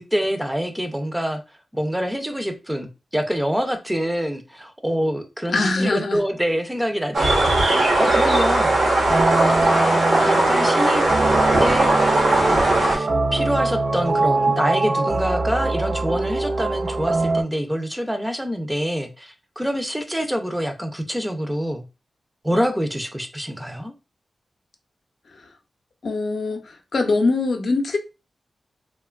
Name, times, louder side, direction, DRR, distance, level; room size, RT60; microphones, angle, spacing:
voice 1, 0.0-1.4 1.7-7.5 8.0-8.7 9.5-11.0 11.6-11.9 12.3-21.8 22.4-23.9, equal, 5° right, 0.4 m, -26 dB
voice 2, 5.5-6.2 25.3-25.5 26.0-28.0, left 3 dB, 65° left, 0.5 m, -23 dB
sound 1, 7.1-13.0, right 2 dB, 80° right, 0.9 m, -18 dB
sound 2, 8.1-17.4, right 3 dB, 60° right, 0.5 m, -23 dB
3.0 x 2.2 x 2.3 m
wide cardioid pair, 105°, 0 cm